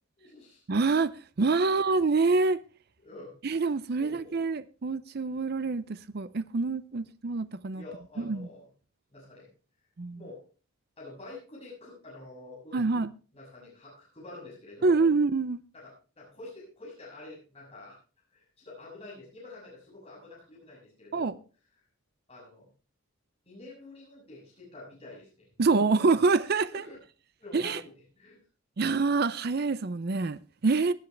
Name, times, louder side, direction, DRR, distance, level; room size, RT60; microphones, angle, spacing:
voice 1, 0.2-0.6 1.6-1.7 3.0-3.3 4.0-4.4 6.9-7.0 7.7-8.7 9.1-9.5 10.1-10.4 11.0-13.1 13.3-15.0 15.7-18.0 18.3-21.3 22.3-22.6 23.4-25.5 26.7-27.0 27.4-27.8 28.1-28.4, left 2 dB, 30° left, 6.8 m, -47 dB
voice 2, 0.7-1.1 1.4-2.6 3.4-7.8 8.2-8.5 10.0-10.2 12.7-13.1 14.8-15.6 21.1-21.4 25.6-26.8 27.5-27.8 28.8-30.9, right 3 dB, 45° right, 0.5 m, -26 dB
18.0 x 10.0 x 3.3 m
head